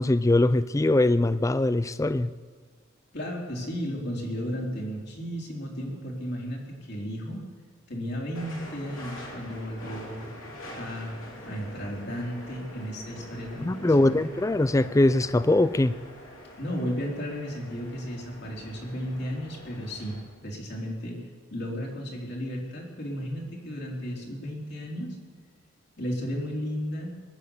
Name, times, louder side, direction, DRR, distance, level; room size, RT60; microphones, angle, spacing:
voice 1, 0.0-2.3 13.6-16.0, left 2 dB, 15° left, 14 dB, 0.4 m, -22 dB
voice 2, 3.1-7.4 7.9-10.3 10.7-11.2 11.4-14.5 16.6-25.2 26.0-27.1, equal, 55° left, -1 dB, 3.5 m, -34 dB
sound 1, 8.3-20.2, left 1 dB, 85° left, 3.4 m, -45 dB
21.0 x 8.8 x 7.0 m, 1.5 s
head